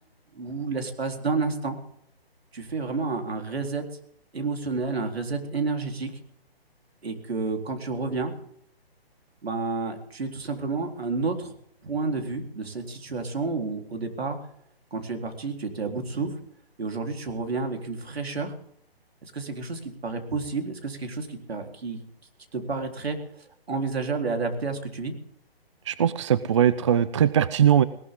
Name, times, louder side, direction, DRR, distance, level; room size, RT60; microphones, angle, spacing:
voice 1, 0.3-1.8 2.5-3.8 4.3-6.1 7.0-8.3 9.4-11.5 11.8-14.4 14.9-16.3 16.8-18.5 19.2-22.0 22.5-23.2 23.7-25.1, right 4 dB, 75° right, 4 dB, 3.9 m, -30 dB
voice 2, 25.9-27.8, right 9 dB, 30° right, 16 dB, 0.5 m, -20 dB
19.5 x 18.5 x 3.7 m, 0.68 s
hypercardioid pair, 150°, 31 cm